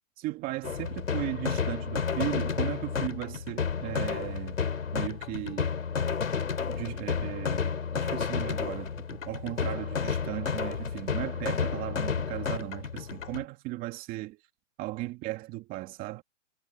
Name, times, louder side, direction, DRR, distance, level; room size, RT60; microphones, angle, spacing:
voice 1, 0.2-4.6 4.9-5.7 6.7-14.4 14.8-16.2, right 18 dB, 25° right, 2.3 m, -36 dB
sound 1, 0.6-13.4, left 6 dB, 85° left, 4.6 m, -31 dB
hypercardioid pair, 150°, 38 cm